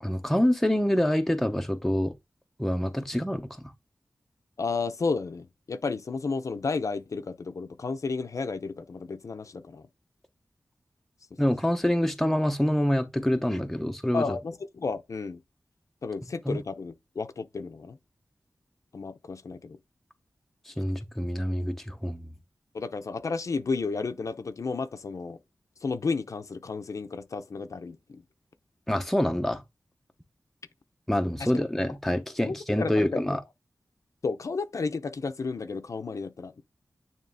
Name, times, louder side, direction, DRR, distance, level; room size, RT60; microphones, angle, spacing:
voice 1, 0.0-2.1 2.6-3.7 11.4-14.3 16.5-16.6 20.7-22.3 28.9-29.6 31.1-33.4, left 1 dB, 5° left, 0.7 m, -26 dB
voice 2, 4.6-9.9 14.1-15.4 16.0-18.0 18.9-19.8 22.7-25.4 25.8-28.2 31.4-31.5 32.4-33.2 34.2-36.6, left 4 dB, 65° left, 0.7 m, -32 dB
9.3 x 3.1 x 3.4 m
wide cardioid pair, 95°, 6 cm